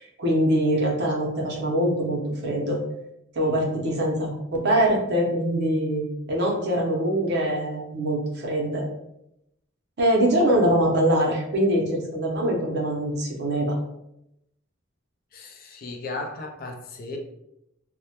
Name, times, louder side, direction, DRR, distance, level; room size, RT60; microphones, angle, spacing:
voice 1, 0.0-2.8 3.3-8.8 10.0-13.8, right 1 dB, 55° right, -1 dB, 0.6 m, -23 dB
voice 2, 15.3-17.2, left 2 dB, 45° left, 2 dB, 0.4 m, -35 dB
2.1 x 2.1 x 2.8 m, 0.83 s
head